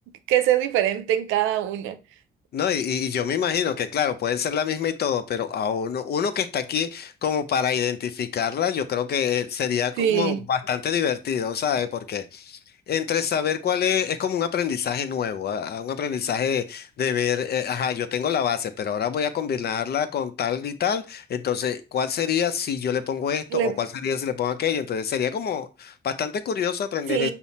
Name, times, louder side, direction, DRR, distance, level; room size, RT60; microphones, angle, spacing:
voice 1, 0.3-2.0 10.0-10.4 23.5-23.7 27.1-27.3, right 11 dB, 90° right, 0.5 m, -23 dB
voice 2, 2.5-12.6 12.9-27.3, left 8 dB, 55° left, 0.6 m, -26 dB
5.6 x 2.1 x 4.1 m
cardioid pair, 90°, 20 cm